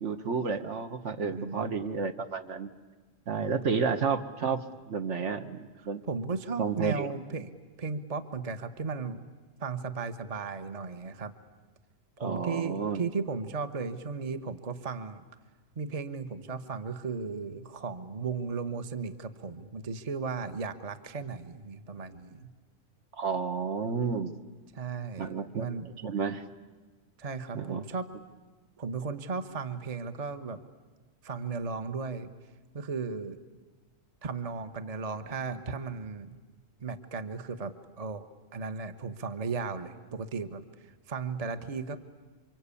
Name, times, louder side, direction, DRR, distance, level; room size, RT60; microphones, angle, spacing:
voice 1, 0.0-2.7 3.3-6.0 6.6-7.1 12.2-13.0 23.1-24.3 25.2-26.4 27.5-27.8, right 5 dB, 65° right, 8 dB, 1.4 m, -31 dB
voice 2, 1.3-1.7 3.4-3.6 6.1-7.5 7.8-9.2 9.6-11.3 12.2-15.2 15.8-22.5 24.7-25.9 27.2-28.1 28.8-30.6 31.2-32.3 32.7-33.4 34.2-36.4 36.8-38.3 38.5-42.0, right 4 dB, 30° right, 10 dB, 1.0 m, -36 dB
28.5 x 25.0 x 8.4 m, 1.3 s
omnidirectional pair, 1.4 m